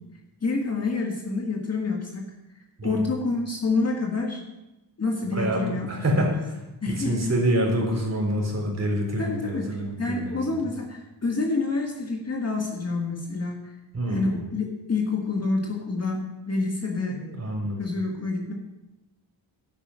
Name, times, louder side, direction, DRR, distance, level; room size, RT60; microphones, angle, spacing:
voice 1, 0.4-2.3 2.8-4.4 5.0-5.9 6.1-6.3 6.8-7.1 9.2-9.7 10.0-13.7 14.1-17.2 17.8-18.5, left 3 dB, 35° left, 1 dB, 1.7 m, -28 dB
voice 2, 2.8-3.1 5.3-10.6 13.9-14.5 17.1-17.8, right 1 dB, 35° right, 0 dB, 4.0 m, -27 dB
12.0 x 9.2 x 6.3 m, 0.99 s
wide cardioid pair, 130°, 45 cm